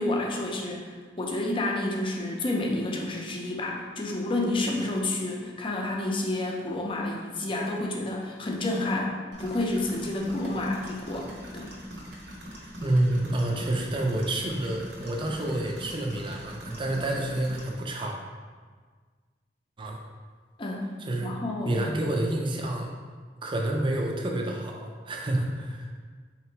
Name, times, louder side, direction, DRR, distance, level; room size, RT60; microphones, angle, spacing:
voice 1, 0.0-11.7 20.6-20.8 21.2-21.7, left 2 dB, 30° left, -1 dB, 0.6 m, -30 dB
sound 1, 9.3-17.7, equal, 85° right, 1.1 m, -43 dB
voice 2, 12.8-18.2 19.8-20.0 21.0-21.3 21.6-22.9 23.4-25.9, right 1 dB, 30° right, 0 dB, 0.5 m, -28 dB
3.8 x 2.9 x 4.5 m, 1.5 s
head